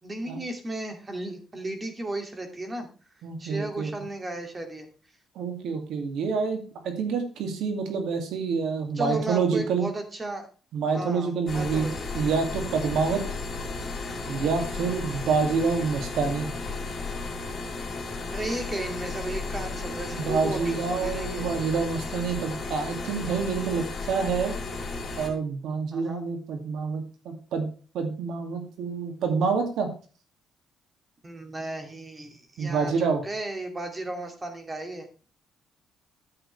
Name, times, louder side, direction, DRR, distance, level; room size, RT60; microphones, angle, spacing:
voice 1, 0.0-2.9 3.4-4.9 9.0-10.5 10.8-12.0 14.7-15.1 18.3-21.5 25.9-26.2 31.2-35.1, right 2 dB, 25° right, 5 dB, 2.4 m, -35 dB
voice 2, 3.2-3.9 5.4-9.8 10.7-11.9 12.1-13.2 14.3-16.5 20.1-24.5 25.2-27.7 27.9-29.9 32.6-33.2, right 5 dB, 80° right, 5 dB, 2.4 m, -27 dB
sound 1, 11.5-25.3, left 3 dB, 40° left, 3.0 m, -34 dB
11.0 x 8.0 x 3.3 m, 0.37 s
cardioid pair, 90°, 0 cm